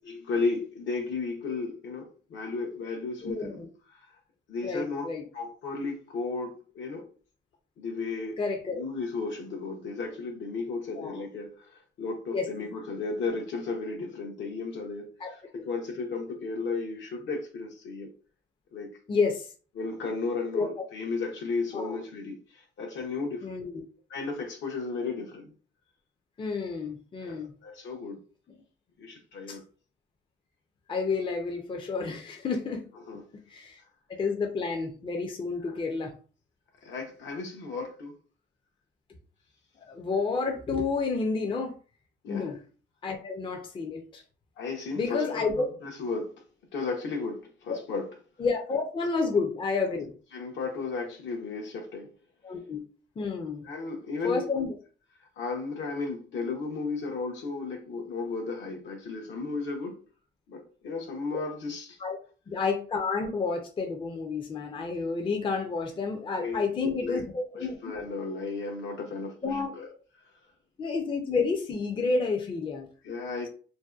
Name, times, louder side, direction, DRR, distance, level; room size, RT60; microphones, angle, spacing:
voice 1, 0.0-3.6 3.9-4.1 4.5-5.1 5.3-7.1 7.8-8.4 8.7-18.1 18.7-18.9 19.8-23.5 24.1-25.5 27.2-28.2 29.0-29.6 33.1-33.2 35.6-35.8 36.8-38.1 42.2-42.5 44.6-46.4 46.7-48.1 50.3-52.1 53.6-54.4 55.4-60.0 60.5-62.0 66.4-67.2 67.6-69.9 73.0-73.5, left 4 dB, 70° left, 0.7 m, -34 dB
voice 2, 3.2-3.7 4.6-5.2 8.4-8.8 11.0-11.2 12.3-12.5 15.2-15.6 19.1-19.5 20.5-20.7 21.7-22.0 23.4-23.8 26.4-27.5 29.5-29.6 30.9-32.8 33.5-33.8 34.1-36.1 39.9-41.8 42.3-42.6 43.0-44.2 45.0-45.7 47.7-47.8 48.4-50.1 52.4-52.8 53.2-53.7 54.2-54.7 61.3-61.4 62.0-62.2 62.5-67.8 69.4-69.7 70.8-72.9, left 4 dB, 25° left, 0.4 m, -30 dB
2.6 x 2.1 x 2.3 m
cardioid pair, 90°, 20 cm